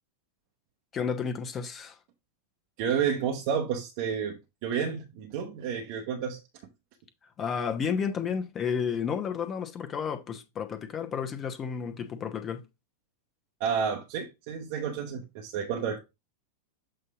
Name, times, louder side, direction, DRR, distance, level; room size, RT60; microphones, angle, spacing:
voice 1, 0.9-2.0 7.4-12.6, left 6 dB, 25° left, 0.9 m, -31 dB
voice 2, 2.8-6.4 13.6-16.0, right 7 dB, 45° right, 0.9 m, -30 dB
7.7 x 2.8 x 4.7 m
figure-of-eight pair, 90°, 0 cm